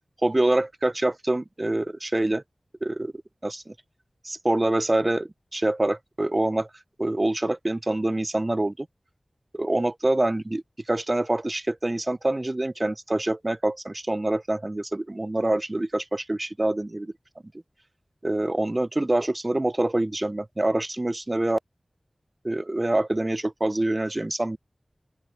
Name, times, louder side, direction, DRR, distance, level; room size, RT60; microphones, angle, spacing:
voice 1, 0.2-2.4 2.8-3.1 3.4-3.7 4.2-6.7 7.0-8.9 9.5-10.6 10.9-17.1 18.2-21.6 22.4-24.6, right 1 dB, 30° right, 0.3 m, -25 dB
open air
wide cardioid pair, 60°, 0 cm